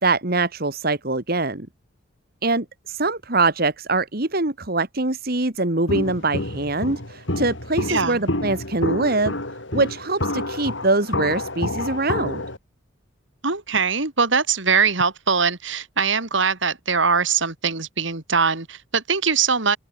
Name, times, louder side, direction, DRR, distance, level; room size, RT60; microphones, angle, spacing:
voice 1, 0.0-1.7 2.4-9.3 9.7-12.4, right 3 dB, 50° right, 2.0 m, -23 dB
Walk footsteps, 5.9-12.6, left 1 dB, 65° left, 7.1 m, -28 dB
voice 2, 7.9-8.2 13.4-19.8, right 5 dB, 70° right, 2.7 m, -22 dB
head